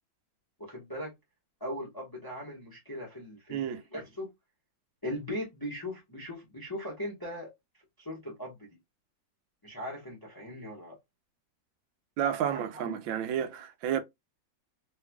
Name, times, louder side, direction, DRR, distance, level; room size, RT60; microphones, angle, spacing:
voice 1, 0.6-1.1 1.6-3.6 3.9-4.3 5.0-7.5 8.0-8.7 9.6-11.0 12.5-13.0, equal, 15° left, 0.8 m, -39 dB
voice 2, 3.5-3.8 12.2-14.0, right 9 dB, 85° right, 1.4 m, -31 dB
3.4 x 3.2 x 2.2 m
omnidirectional pair, 2.1 m